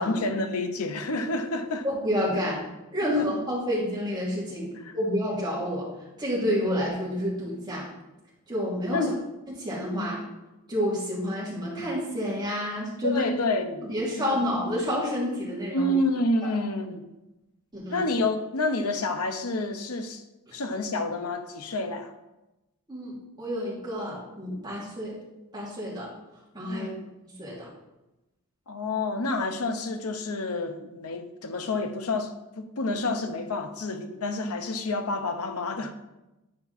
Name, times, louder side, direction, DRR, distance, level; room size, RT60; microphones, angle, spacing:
voice 1, 0.0-1.8 3.2-3.3 4.7-4.9 8.9-9.2 9.9-10.1 13.0-13.8 14.2-14.4 15.7-17.1 17.9-20.2 20.5-22.1 26.7-27.0 28.7-35.9, left 2 dB, 85° left, 0.8 m, -29 dB
voice 2, 1.8-2.6 2.9-5.9 6.2-7.9 8.5-9.1 9.6-10.2 10.7-13.3 13.8-15.9 17.7-18.1 20.5-20.6 22.9-25.1 25.5-26.1 26.5-26.9 27.4-27.6, equal, 20° right, 2.6 m, -29 dB
9.7 x 4.6 x 4.1 m
head